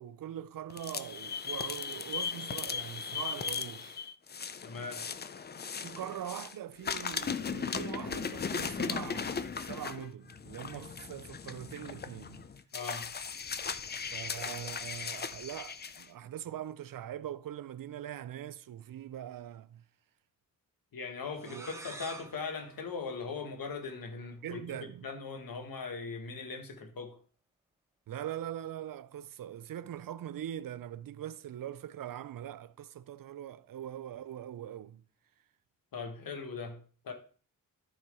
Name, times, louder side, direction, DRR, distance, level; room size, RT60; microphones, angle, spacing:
voice 1, 0.0-4.0 5.8-12.5 14.1-19.8 21.4-21.7 24.4-25.1 28.1-35.0, right 11 dB, 75° right, 0.5 m, -42 dB
sound 1, 0.7-6.5 6.8-16.0, left 6 dB, 30° left, 0.4 m, -37 dB
voice 2, 4.6-5.1 12.7-13.1 20.9-27.2 35.9-37.1, left 4 dB, 85° left, 1.4 m, -40 dB
sound 2, 21.3-24.0, right 2 dB, 10° right, 0.7 m, -49 dB
12.5 x 4.5 x 3.5 m
wide cardioid pair, 155°, 34 cm